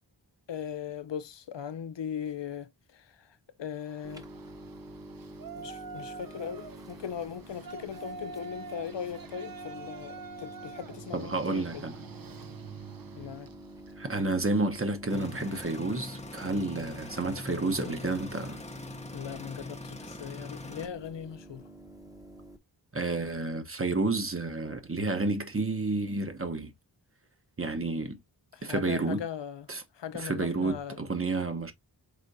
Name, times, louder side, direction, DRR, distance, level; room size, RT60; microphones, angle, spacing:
voice 1, 0.5-4.3 5.5-11.8 13.2-13.5 17.8-18.0 19.1-21.7 28.5-29.7 29.9-31.0, left 8 dB, 80° left, 0.7 m, -39 dB
Yell, 3.8-14.0, right 5 dB, 55° right, 0.7 m, -46 dB
sound 1, 4.0-22.6, right 1 dB, 10° right, 1.0 m, -48 dB
voice 2, 11.1-12.0 14.0-18.6 22.9-26.7 27.6-28.2 28.6-29.2 29.7-29.8 30.1-31.7, right 3 dB, 30° right, 1.0 m, -30 dB
sound 2, 15.1-20.9, left 2 dB, 15° left, 0.7 m, -43 dB
5.0 x 3.6 x 2.6 m
wide cardioid pair, 75°, 42 cm